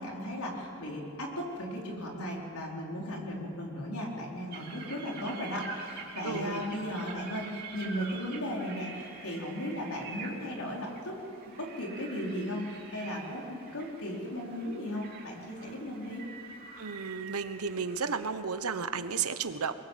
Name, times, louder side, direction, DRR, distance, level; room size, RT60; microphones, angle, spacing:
voice 1, 0.0-11.2 11.6-16.3, equal, 80° left, -1 dB, 4.5 m, -36 dB
sound 1, 4.5-18.3, right 5 dB, 40° right, 3.0 m, -46 dB
voice 2, 6.2-6.6 16.8-19.7, right 5 dB, 90° right, 10 dB, 1.2 m, -33 dB
24.0 x 22.0 x 7.6 m, 2.7 s
head